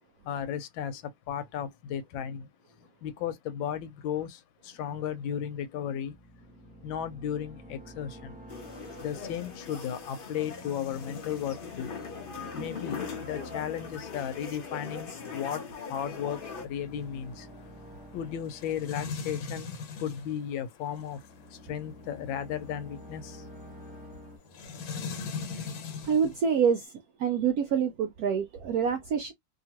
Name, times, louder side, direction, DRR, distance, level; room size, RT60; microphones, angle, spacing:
voice 1, 0.2-2.5 2.8-6.2 6.8-8.4 9.0-11.9 12.5-17.5 18.1-21.2 21.5-23.5, left 9 dB, 90° left, 1.4 m, -35 dB
sound 1, 6.0-20.3 20.8-24.4, equal, 10° right, 0.4 m, -50 dB
sound 2, 8.5-16.6, left 5 dB, 55° left, 0.5 m, -41 dB
sound 3, 9.1-26.8, left 5 dB, 70° left, 1.5 m, -44 dB
voice 2, 26.0-26.9 27.2-29.3, right 7 dB, 75° right, 0.8 m, -26 dB
2.9 x 2.7 x 2.8 m
omnidirectional pair, 2.1 m